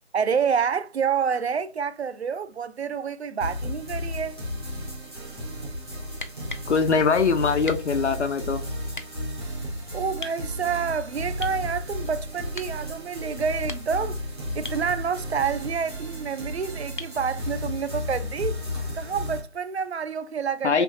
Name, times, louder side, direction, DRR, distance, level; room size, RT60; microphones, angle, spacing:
voice 1, 0.1-4.4 9.9-14.2 14.5-18.6 18.9-20.8, right 6 dB, 70° right, 0.5 m, -28 dB
sound 1, 3.4-19.4, left 1 dB, 25° right, 1.0 m, -33 dB
sound 2, 6.2-6.7 7.7-7.9 8.9-9.1 10.2-10.4 11.4-11.6 12.6-12.8 13.5-14.1 14.6-14.9 17.0-17.2 19.1-19.2, left 3 dB, 50° left, 0.4 m, -38 dB
voice 2, 6.7-8.6 20.6-20.8, left 5 dB, 90° left, 0.6 m, -22 dB
3.4 x 2.8 x 2.5 m
figure-of-eight pair, 175°, 34 cm